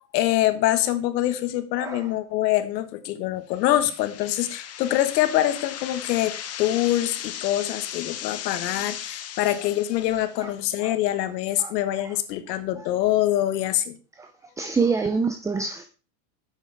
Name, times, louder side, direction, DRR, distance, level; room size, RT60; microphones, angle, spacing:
voice 1, 0.1-14.0, left 13 dB, 75° left, 11 dB, 1.4 m, -24 dB
sound 1, 3.6-10.5, left 10 dB, 30° left, 1.0 m, -37 dB
voice 2, 14.6-15.9, right 4 dB, 5° right, 8 dB, 0.4 m, -26 dB
11.5 x 8.4 x 3.4 m, 0.34 s
supercardioid pair, 115°, 49 cm